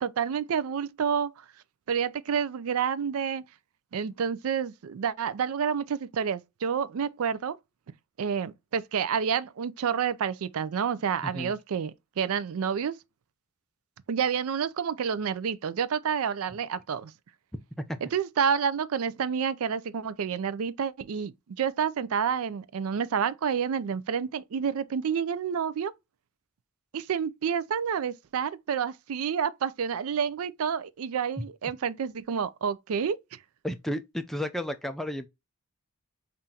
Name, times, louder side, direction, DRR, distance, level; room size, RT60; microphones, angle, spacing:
voice 1, 0.0-1.3 1.9-3.4 3.9-7.6 8.2-11.9 12.2-13.0 14.1-17.1 18.0-25.9 26.9-33.4, right 7 dB, 75° right, 0.4 m, -29 dB
voice 2, 33.6-35.3, left 1 dB, ahead, 0.4 m, -32 dB
5.5 x 2.5 x 2.7 m
head